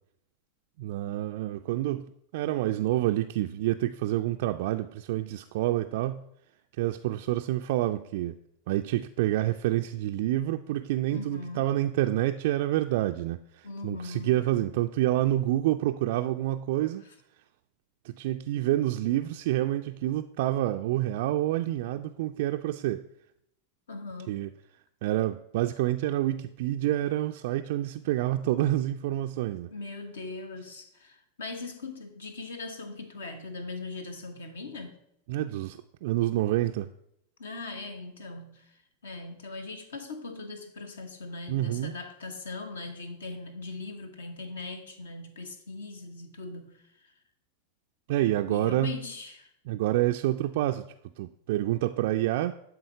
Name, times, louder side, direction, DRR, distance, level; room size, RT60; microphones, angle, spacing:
voice 1, 0.8-6.2 6.7-8.4 8.7-17.0 18.0-23.0 24.3-24.5 25.0-29.7 35.3-36.9 41.5-41.9 48.1-48.9 49.7-50.9 51.2-52.5, right 14 dB, 50° right, 0.3 m, -28 dB
voice 2, 11.1-11.7 13.6-14.4 23.9-24.4 29.7-35.0 37.4-47.1 48.5-49.5, left 3 dB, 65° left, 1.1 m, -40 dB
11.5 x 3.9 x 4.8 m
figure-of-eight pair, 90°, 0 cm